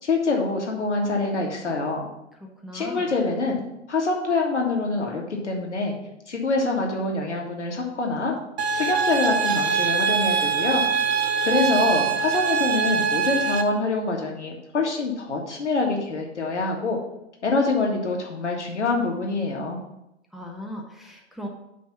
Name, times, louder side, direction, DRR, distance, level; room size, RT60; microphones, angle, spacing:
voice 1, 0.0-2.0 2.7-3.6 3.9-5.9 6.3-8.4 8.7-10.8 11.4-17.0 17.4-19.8, left 3 dB, 75° left, 0 dB, 1.9 m, -25 dB
voice 2, 2.6-3.1 20.3-21.5, equal, ahead, 1 dB, 1.0 m, -37 dB
sound 1, 8.6-13.6, right 6 dB, 65° right, 0.9 m, -23 dB
9.3 x 3.5 x 5.7 m, 0.86 s
figure-of-eight pair, 110°, 35 cm